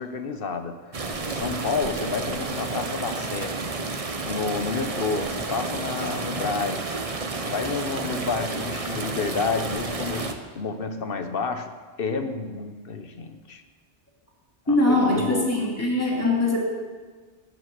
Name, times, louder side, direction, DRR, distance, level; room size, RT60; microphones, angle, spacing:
voice 1, 0.0-3.6 4.2-13.6 14.7-15.7, left 4 dB, 50° left, 7 dB, 1.2 m, -30 dB
sound 1, 0.9-10.3, right 3 dB, 30° right, 0.9 m, -31 dB
voice 2, 14.7-16.6, left 2 dB, 10° left, -3 dB, 2.7 m, -22 dB
12.5 x 7.8 x 7.7 m, 1.4 s
omnidirectional pair, 1.3 m